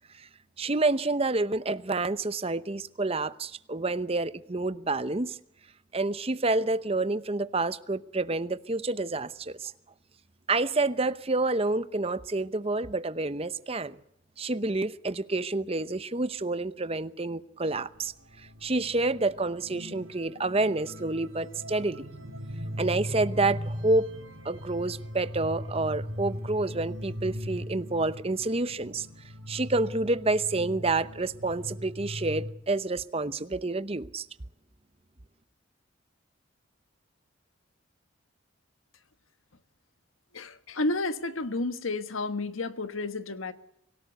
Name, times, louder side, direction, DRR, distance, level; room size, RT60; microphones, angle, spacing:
voice 1, 0.6-5.4 5.9-9.7 10.5-14.0 14.4-22.1 22.8-24.1 24.4-29.1 29.5-34.3, right 2 dB, 30° right, 0.8 m, -28 dB
sound 1, 17.9-32.5, equal, 75° right, 4.0 m, -39 dB
voice 2, 40.3-43.5, left 2 dB, 80° left, 1.3 m, -31 dB
25.0 x 17.5 x 8.1 m
head